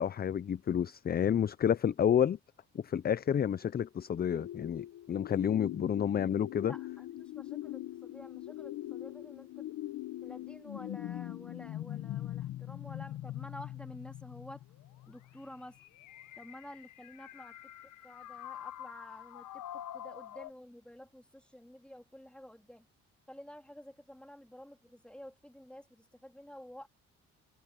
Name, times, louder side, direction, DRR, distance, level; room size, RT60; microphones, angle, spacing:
voice 1, 0.0-2.4 2.7-6.7, left 9 dB, 30° left, 0.5 m, -30 dB
sound 1, 4.3-20.5, left 14 dB, 80° left, 0.9 m, -43 dB
voice 2, 6.7-9.7 10.2-14.6 15.1-15.8 16.4-17.6 18.0-22.9 23.3-26.9, equal, 5° left, 3.6 m, -51 dB
cardioid pair, 90°, 30 cm